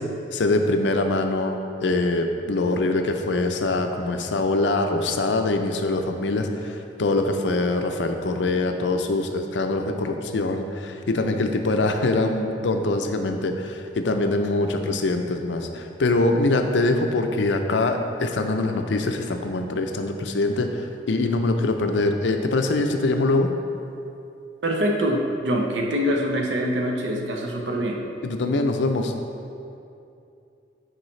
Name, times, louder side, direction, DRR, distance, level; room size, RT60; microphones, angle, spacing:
voice 1, 0.3-23.5 28.2-29.1, left 2 dB, 75° left, 5 dB, 0.5 m, -23 dB
voice 2, 24.6-28.0, equal, 75° right, 1 dB, 0.8 m, -24 dB
9.0 x 4.7 x 3.2 m, 2.7 s
head